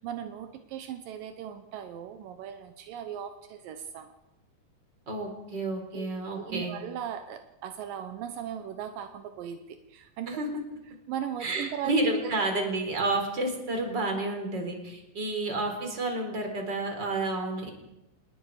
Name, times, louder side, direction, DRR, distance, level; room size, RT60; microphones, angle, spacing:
voice 1, 0.0-4.1 5.9-6.1 6.4-10.4 11.1-11.9 12.2-12.3, right 9 dB, 80° right, 7 dB, 2.6 m, -38 dB
voice 2, 5.1-6.8 10.3-10.5 11.4-17.7, right 2 dB, 30° right, 3 dB, 4.4 m, -30 dB
27.0 x 20.0 x 4.9 m, 0.93 s
omnidirectional pair, 3.9 m